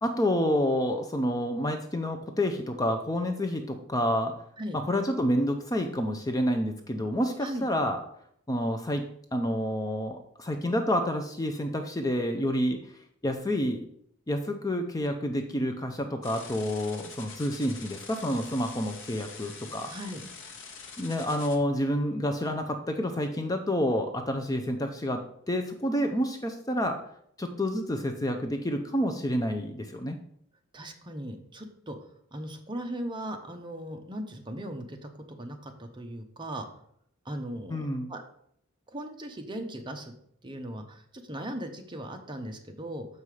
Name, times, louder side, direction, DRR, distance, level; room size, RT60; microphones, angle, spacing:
voice 1, 0.0-4.3 4.7-8.0 8.5-9.0 9.3-12.8 13.2-13.8 14.3-19.9 21.0-25.2 25.5-27.0 27.4-30.2 37.7-38.1, equal, 15° left, 5 dB, 0.5 m, -28 dB
sound 1, 16.2-21.6, left 5 dB, 60° left, 1.1 m, -45 dB
voice 2, 19.9-20.2 22.0-22.2 30.7-32.0 32.3-36.7 37.2-38.2 38.9-40.1 40.4-43.1, right 1 dB, 20° right, 4 dB, 0.8 m, -38 dB
6.7 x 5.5 x 4.8 m, 0.67 s
head